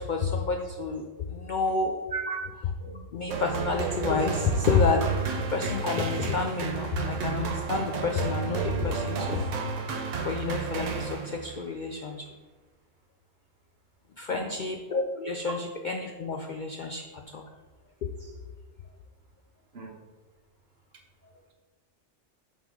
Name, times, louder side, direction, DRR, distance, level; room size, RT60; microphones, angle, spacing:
voice 1, 0.0-2.0 3.1-5.1 5.5-9.5 10.2-12.3 14.2-17.0 17.3-17.5 18.2-18.3, left 4 dB, 65° left, 3 dB, 0.5 m, -29 dB
voice 2, 2.1-2.4 2.8-3.0 14.3-14.6 19.7-20.0, right 5 dB, 60° right, 2 dB, 1.0 m, -35 dB
sound 1, 3.3-11.6, right 5 dB, 80° right, 1.1 m, -31 dB
6.1 x 3.6 x 4.9 m, 1.3 s
omnidirectional pair, 1.3 m